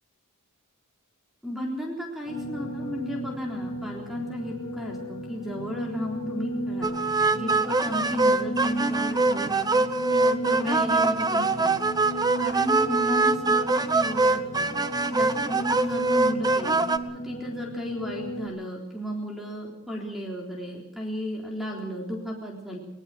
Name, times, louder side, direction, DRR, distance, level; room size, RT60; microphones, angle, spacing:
voice 1, 1.4-6.9 7.3-11.9 12.4-14.8 15.1-16.8 17.2-22.8, equal, ahead, -1 dB, 3.9 m, -34 dB
sound 1, 2.3-18.5, equal, 25° left, 5.5 m, -35 dB
sound 2, 6.8-17.0, right 3 dB, 20° right, 1.0 m, -23 dB
21.5 x 20.5 x 6.1 m, 0.81 s
head